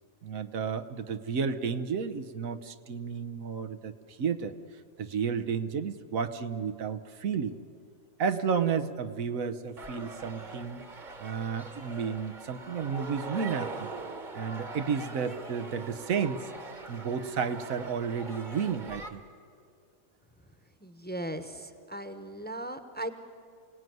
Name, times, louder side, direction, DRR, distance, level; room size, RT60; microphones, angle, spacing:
voice 1, 0.2-4.5 5.0-7.5 8.2-10.8 11.2-13.9 14.3-16.5 16.9-19.2, right 6 dB, 90° right, 9 dB, 1.4 m, -32 dB
sound 1, 9.8-19.1, right 3 dB, 40° right, 1.3 m, -42 dB
voice 2, 20.8-23.1, right 1 dB, 10° left, 9 dB, 0.9 m, -38 dB
28.0 x 18.0 x 9.3 m, 2.3 s
omnidirectional pair, 1.4 m